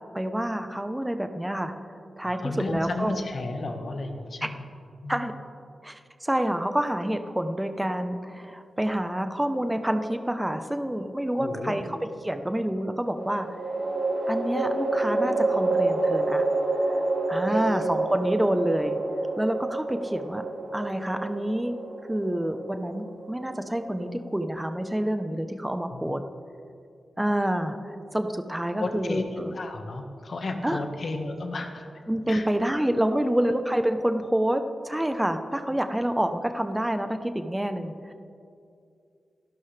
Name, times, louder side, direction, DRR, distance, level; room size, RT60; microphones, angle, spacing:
voice 1, 0.1-1.7 2.2-3.1 5.1-5.3 5.8-12.0 12.2-13.5 14.3-16.4 17.3-19.0 19.4-20.4 20.7-21.8 22.0-26.2 27.2-29.5 30.6-30.8 32.1-38.1, right 1 dB, 10° right, 7 dB, 0.9 m, -28 dB
voice 2, 2.2-4.7 5.0-5.3 11.3-11.8 17.5-17.9 25.9-26.2 28.8-31.9 32.3-32.5 33.1-33.4, left 2 dB, 55° left, 4 dB, 1.5 m, -33 dB
sound 1, 10.1-10.9 13.1-24.4, right 2 dB, 65° right, 3.5 m, -28 dB
28.0 x 11.5 x 3.4 m, 2.5 s
wide cardioid pair, 90°, 0 cm